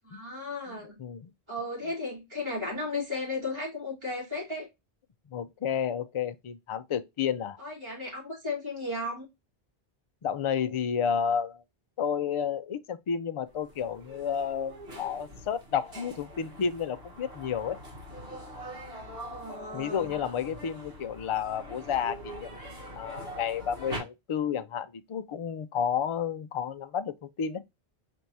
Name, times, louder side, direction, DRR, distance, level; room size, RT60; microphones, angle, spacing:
voice 1, 0.0-1.0 1.5-4.7 7.6-9.2 19.3-20.2, left 2 dB, 25° right, 3.0 m, -35 dB
voice 2, 0.7-1.3 5.3-7.6 10.2-11.6 12.0-17.8 19.7-22.5 23.0-27.6, left 7 dB, 55° left, 0.3 m, -31 dB
sound 1, 13.5-24.0, equal, 70° right, 1.8 m, -43 dB
4.5 x 3.4 x 2.7 m
omnidirectional pair, 1.0 m